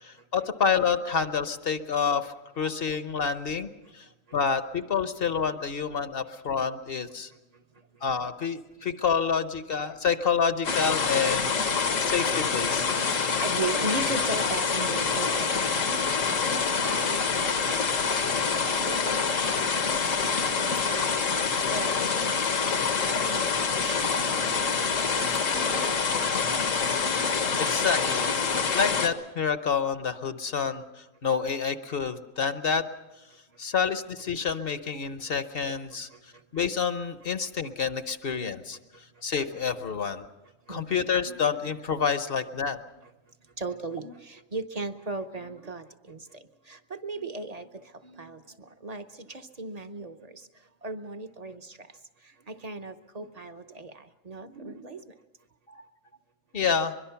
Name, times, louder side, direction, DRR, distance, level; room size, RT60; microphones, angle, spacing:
voice 1, 0.0-4.0 4.3-7.3 8.0-12.8 27.6-28.3 28.7-32.8 33.6-38.8 39.2-40.2 40.7-42.8 55.7-55.9 56.5-56.9, left 6 dB, 50° left, 10 dB, 1.0 m, -28 dB
sound 1, 10.6-29.1, left 5 dB, 80° left, 1.6 m, -26 dB
voice 2, 13.0-17.8 18.8-21.2 21.7-24.8 25.1-25.2 25.5-26.4 36.1-36.2 40.7-40.9 41.3-41.4 43.6-50.5 50.8-51.9 52.5-55.2, right 3 dB, 35° right, 8 dB, 0.8 m, -38 dB
23.5 x 22.5 x 5.8 m, 1.1 s
omnidirectional pair, 1.3 m